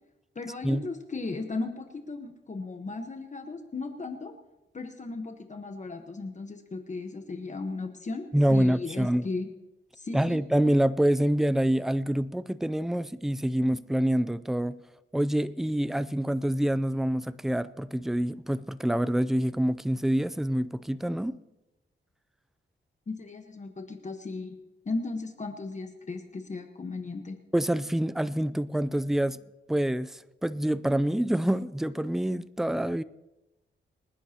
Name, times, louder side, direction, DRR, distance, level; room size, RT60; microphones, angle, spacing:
voice 1, 0.3-4.3 4.7-9.5 9.9-10.4 23.1-24.6 24.8-27.4, left 3 dB, 35° left, 1.1 m, -36 dB
voice 2, 8.3-9.3 10.1-14.8 15.1-21.4 27.5-29.4 29.7-33.0, right 1 dB, ahead, 0.4 m, -26 dB
26.0 x 10.0 x 2.9 m
wide cardioid pair, 105°, 20 cm